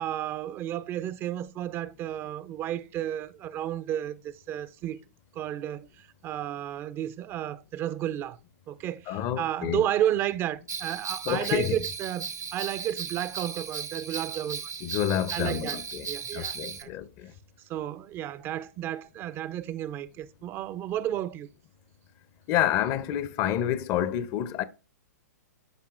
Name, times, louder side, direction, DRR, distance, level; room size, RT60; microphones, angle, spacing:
voice 1, 0.0-5.0 5.3-8.4 8.7-14.7 15.3-16.9 17.7-21.5, right 11 dB, 25° right, 0.5 m, -32 dB
voice 2, 9.1-9.9 11.3-11.8 14.8-17.3 22.5-24.6, left 11 dB, 35° left, 0.6 m, -29 dB
Bell, 10.7-16.8, right 6 dB, 85° right, 1.3 m, -36 dB
13.0 x 5.3 x 2.5 m
figure-of-eight pair, 120°, 9 cm